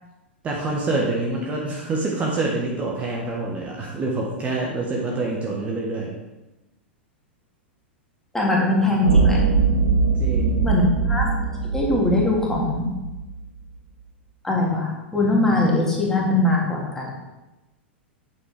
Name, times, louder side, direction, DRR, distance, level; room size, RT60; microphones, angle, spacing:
voice 1, 0.4-6.1 10.2-10.7, right 2 dB, 20° right, -2 dB, 1.5 m, -26 dB
voice 2, 8.3-9.4 10.6-11.3 11.7-12.9 14.4-17.1, left 2 dB, 5° left, -3 dB, 2.4 m, -21 dB
sound 1, 9.0-13.4, right 4 dB, 75° right, 1.5 m, -21 dB
8.9 x 7.8 x 3.6 m, 1.0 s
figure-of-eight pair, 95°, 6 cm